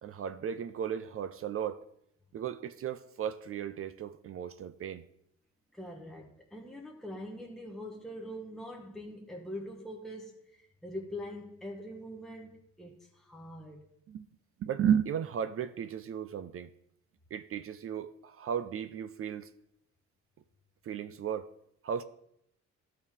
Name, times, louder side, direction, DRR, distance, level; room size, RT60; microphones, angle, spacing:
voice 1, 0.0-1.8 2.3-5.1 14.1-14.3 14.6-16.7 17.3-19.5 20.8-21.5 21.8-22.0, right 8 dB, 50° right, 0.4 m, -34 dB
voice 2, 5.7-13.8, equal, ahead, 0.9 m, -43 dB
12.0 x 4.5 x 3.7 m
cardioid pair, 90°, 30 cm